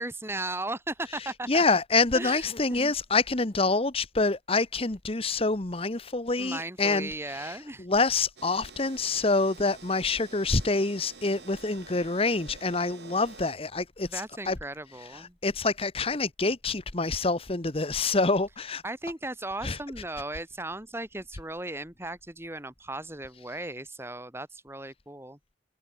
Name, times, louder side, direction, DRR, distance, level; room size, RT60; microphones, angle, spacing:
voice 1, 0.0-1.6 2.1-2.9 6.4-7.9 14.1-15.4 18.8-25.4, right 2 dB, 15° right, 2.9 m, -37 dB
voice 2, 1.5-14.6 15.1-18.8 19.6-19.8, left 3 dB, 30° left, 1.1 m, -27 dB
sound 1, 8.4-13.5, right 4 dB, 65° right, 3.1 m, -49 dB
head